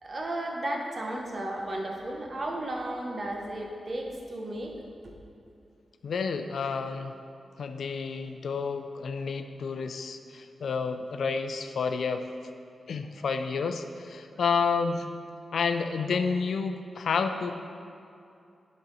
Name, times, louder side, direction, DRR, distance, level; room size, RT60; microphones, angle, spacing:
voice 1, 0.0-4.7 5.0-5.1, right 1 dB, 45° right, 1 dB, 1.1 m, -34 dB
voice 2, 6.0-7.1 7.6-12.2 12.9-15.1 15.5-17.5, left 5 dB, 75° left, 8 dB, 0.4 m, -30 dB
11.0 x 4.3 x 4.0 m, 2.6 s
cardioid pair, 75°, 0 cm